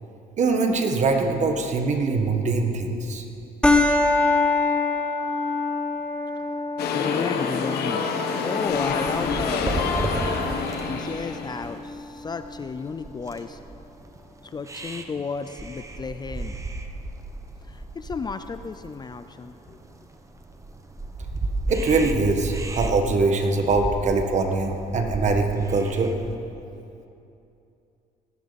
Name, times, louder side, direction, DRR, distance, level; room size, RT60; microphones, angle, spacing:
voice 1, 0.4-3.2 21.7-26.1, right 3 dB, 45° right, 4 dB, 1.6 m, -23 dB
sound 1, 3.6-12.6, left 3 dB, 5° left, 1.2 m, -26 dB
sound 2, 6.8-11.7, left 5 dB, 70° left, 1.4 m, -27 dB
voice 2, 6.9-10.4 10.9-13.6 14.4-16.6 17.6-19.8, left 5 dB, 25° left, 10 dB, 0.5 m, -33 dB
sound 3, 8.7-26.4, right 2 dB, 20° right, 1.1 m, -34 dB
18.5 x 14.0 x 4.2 m, 2.7 s
cardioid pair, 110°, 17 cm